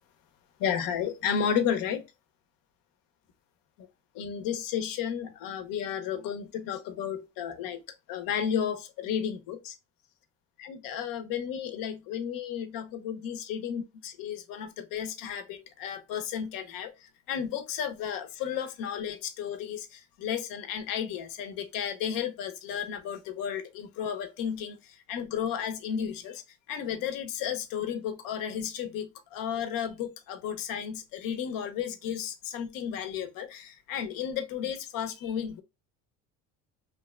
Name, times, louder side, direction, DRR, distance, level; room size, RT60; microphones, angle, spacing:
voice 1, 0.6-2.0 4.1-7.8 8.1-9.8 10.6-13.8 14.2-26.4 26.7-35.6, left 8 dB, 65° left, 0.6 m, -33 dB
2.8 x 2.1 x 2.2 m
supercardioid pair, 95°, 36 cm